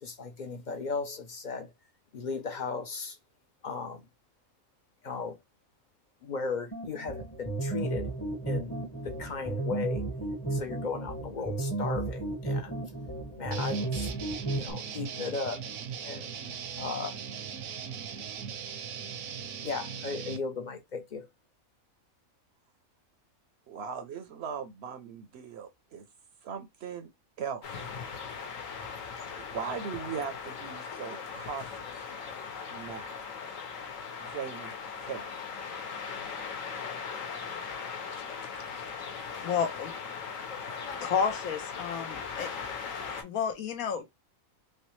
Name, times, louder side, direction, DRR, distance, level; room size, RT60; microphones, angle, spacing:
voice 1, 0.0-1.7 2.1-3.2 3.6-4.1 5.0-5.4 6.2-8.1 8.5-10.0 10.5-12.8 13.4-14.1 14.5-15.7 16.0-16.3 16.8-17.2 19.6-21.3, left 4 dB, 55° left, 0.5 m, -36 dB
sound 1, 6.7-14.7, right 2 dB, 15° left, 0.6 m, -33 dB
sound 2, 13.5-20.4, right 7 dB, 80° right, 1.0 m, -39 dB
voice 2, 23.7-26.1 26.4-27.1 27.4-27.7 29.2-31.9 32.7-33.2 34.2-34.7 35.0-35.3, right 7 dB, 65° right, 0.7 m, -39 dB
sound 3, 27.6-43.2, left 6 dB, 70° left, 1.2 m, -39 dB
voice 3, 39.4-39.9 41.0-42.5 43.2-44.0, left 7 dB, 90° left, 1.3 m, -31 dB
3.2 x 3.2 x 3.0 m
omnidirectional pair, 1.4 m